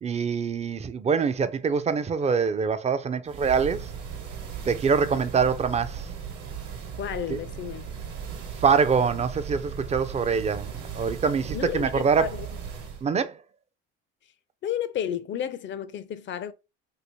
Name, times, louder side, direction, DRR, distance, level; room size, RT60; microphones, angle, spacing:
voice 1, 0.0-3.9 4.7-6.1 7.3-7.4 8.6-12.3 13.0-13.4, right 6 dB, 20° right, 0.4 m, -24 dB
sound 1, 3.3-13.1, right 7 dB, 65° right, 1.1 m, -37 dB
voice 2, 7.0-7.9 11.5-12.5 14.6-16.5, left 10 dB, 40° left, 0.4 m, -32 dB
3.0 x 2.8 x 2.9 m
supercardioid pair, 85°, 31 cm